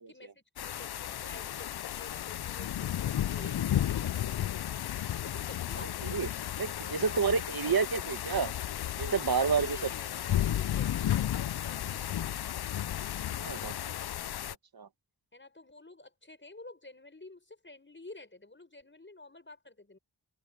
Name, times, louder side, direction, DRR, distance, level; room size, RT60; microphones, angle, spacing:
voice 1, 0.1-4.7 5.2-6.3 6.8-7.2 9.5-12.3 15.3-20.0, left 2 dB, 25° left, 6.0 m, -51 dB
sound 1, 0.6-14.5, left 11 dB, 60° left, 0.5 m, -33 dB
voice 2, 5.8-6.3 6.6-8.5 9.0-9.8 13.4-13.7 14.7-14.9, right 5 dB, 55° right, 1.5 m, -30 dB
open air
cardioid pair, 55°, 44 cm